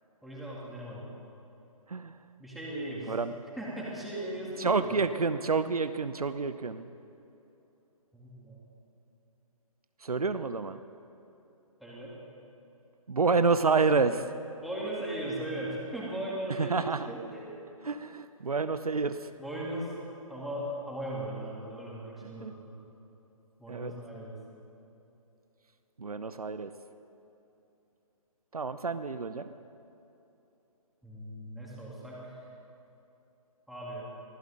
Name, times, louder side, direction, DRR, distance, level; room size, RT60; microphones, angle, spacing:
voice 1, 0.2-1.1 2.4-3.1 3.6-5.0 8.1-8.7 11.8-12.2 14.6-17.6 19.3-19.9 20.3-22.7 23.6-24.3 31.0-32.4 33.7-34.1, right 1 dB, ahead, -7 dB, 2.9 m, -38 dB
voice 2, 4.6-6.9 10.0-10.8 13.1-14.3 16.6-17.1 17.8-19.3 22.4-22.5 23.7-23.9 26.0-26.7 28.5-29.5, right 4 dB, 80° right, 11 dB, 0.7 m, -28 dB
23.5 x 15.5 x 3.8 m, 2.9 s
figure-of-eight pair, 140°, 19 cm